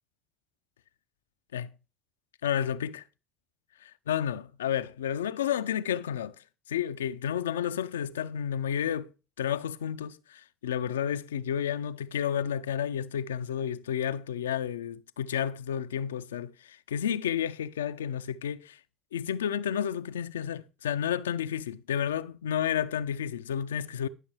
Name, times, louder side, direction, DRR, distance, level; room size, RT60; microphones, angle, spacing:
voice 1, 2.4-3.0 3.8-6.4 6.7-9.1 9.4-18.8 19.1-24.1, left 9 dB, 85° left, 0.3 m, -31 dB
10.5 x 6.3 x 3.3 m
hypercardioid pair, 60°, 0 cm